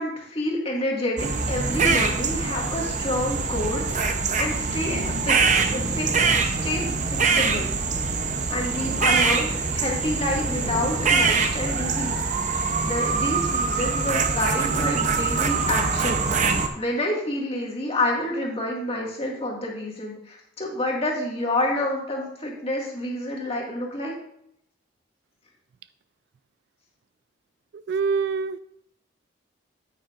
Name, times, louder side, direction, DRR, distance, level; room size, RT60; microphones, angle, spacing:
voice 1, 0.0-6.9 7.2-7.7 8.2-24.1, left 1 dB, 30° left, -1 dB, 1.9 m, -29 dB
sound 1, 1.2-16.7, right 4 dB, 40° right, 0.7 m, -24 dB
voice 2, 27.7-28.6, right 5 dB, 55° right, 14 dB, 0.3 m, -25 dB
9.1 x 8.9 x 2.5 m, 0.74 s
head